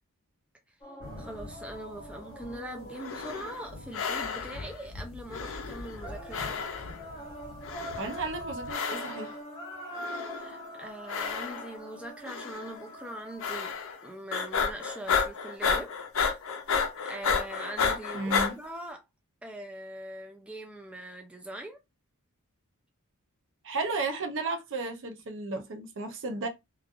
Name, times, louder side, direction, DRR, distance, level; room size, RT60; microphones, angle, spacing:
sound 1, 0.8-4.6 6.0-14.1, equal, 20° left, 0.8 m, -44 dB
sound 2, 1.0-8.7, left 2 dB, 75° right, 1.6 m, -46 dB
voice 1, 1.2-6.6 10.4-13.8 14.0-15.9 17.0-19.0 19.4-21.8, right 1 dB, 5° right, 0.4 m, -42 dB
sound 3, 2.9-3.7 3.9-4.7 5.3-6.1 6.3-7.1 7.6-8.3 8.7-9.3 9.9-10.6 11.1-11.9 12.3-12.7 13.4-14.0 14.3-18.5, left 6 dB, 65° left, 0.6 m, -31 dB
voice 2, 8.0-9.4 18.1-18.5 23.6-26.5, right 3 dB, 55° right, 0.6 m, -33 dB
3.1 x 2.4 x 2.4 m
head